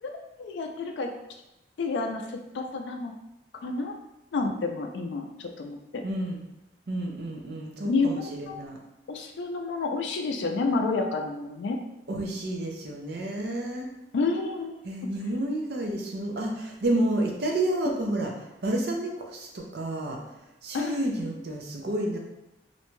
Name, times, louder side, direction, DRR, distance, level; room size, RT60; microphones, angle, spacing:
voice 1, 0.4-1.1 1.8-3.1 3.6-3.9 4.3-6.0 7.8-8.6 9.1-11.8 14.1-14.8 20.7-20.9, left 3 dB, 85° left, 3 dB, 0.3 m, -29 dB
voice 2, 6.0-6.4 6.9-8.8 12.1-13.9 14.8-18.3 18.6-20.2 20.6-22.2, right 1 dB, 65° right, 1 dB, 0.5 m, -30 dB
2.5 x 2.1 x 3.0 m, 0.93 s
head